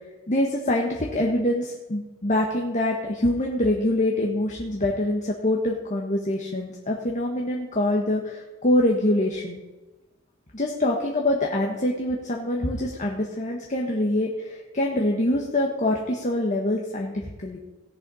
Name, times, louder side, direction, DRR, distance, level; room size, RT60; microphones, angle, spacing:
voice 1, 0.3-9.6 10.5-17.6, left 1 dB, 35° left, -1 dB, 1.4 m, -25 dB
17.5 x 6.7 x 5.6 m, 1.1 s
head